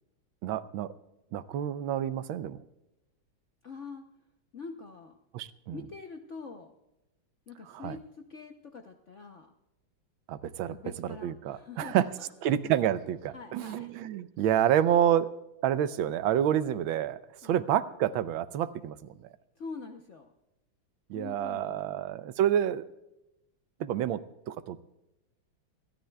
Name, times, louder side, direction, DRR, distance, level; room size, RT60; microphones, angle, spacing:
voice 1, 0.4-0.9 1.3-2.6 5.3-5.8 7.7-7.9 10.3-12.0 12.4-15.3 15.6-19.3 21.1-22.8 23.8-24.2 24.5-24.8, right 10 dB, 80° right, 14 dB, 1.4 m, -28 dB
voice 2, 3.6-4.0 4.5-5.1 5.7-6.7 7.5-9.5 10.7-12.5 13.3-13.9 17.4-17.6 19.6-20.3 21.1-22.0, left 4 dB, 55° left, 4 dB, 0.8 m, -45 dB
26.5 x 13.0 x 2.3 m, 0.92 s
omnidirectional pair, 2.2 m